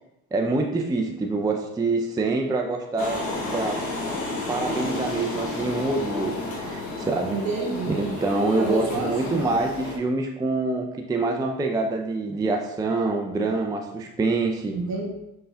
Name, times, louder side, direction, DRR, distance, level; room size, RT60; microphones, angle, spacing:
voice 1, 0.3-3.2 3.5-3.8 4.5-7.4 7.9-14.7, right 3 dB, 10° right, 2 dB, 0.3 m, -26 dB
sound 1, 3.0-10.0, left 2 dB, 65° left, 1.2 m, -31 dB
voice 2, 7.3-8.1 8.6-9.4 14.7-15.1, right 3 dB, 55° right, -1 dB, 1.3 m, -29 dB
5.5 x 3.2 x 2.2 m, 0.88 s
supercardioid pair, 75°, 33 cm